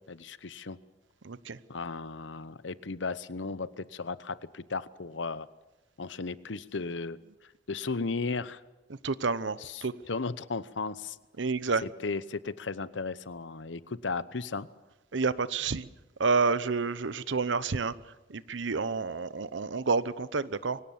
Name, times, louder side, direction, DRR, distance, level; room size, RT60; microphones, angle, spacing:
voice 1, 0.1-0.8 1.7-5.5 6.0-7.2 7.7-8.6 9.6-11.2 11.8-14.7, left 4 dB, 80° left, 16 dB, 0.9 m, -35 dB
voice 2, 1.2-1.6 9.0-9.9 11.4-11.8 15.1-15.9 16.2-17.9 18.3-20.8, right 4 dB, 85° right, 16 dB, 0.8 m, -29 dB
23.5 x 17.5 x 7.1 m, 1.1 s
head